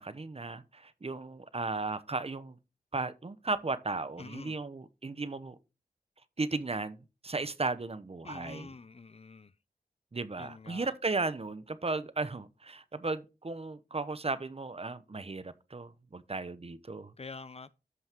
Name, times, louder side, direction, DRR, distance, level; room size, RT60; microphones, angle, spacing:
voice 1, 0.0-2.6 2.9-5.5 6.4-8.7 10.1-17.1, right 3 dB, 40° right, 0.9 m, -35 dB
voice 2, 4.2-4.6 8.2-9.5 10.4-10.9 17.2-17.7, left 4 dB, 40° left, 0.5 m, -46 dB
14.0 x 5.6 x 3.0 m
cardioid pair, 50°, 16 cm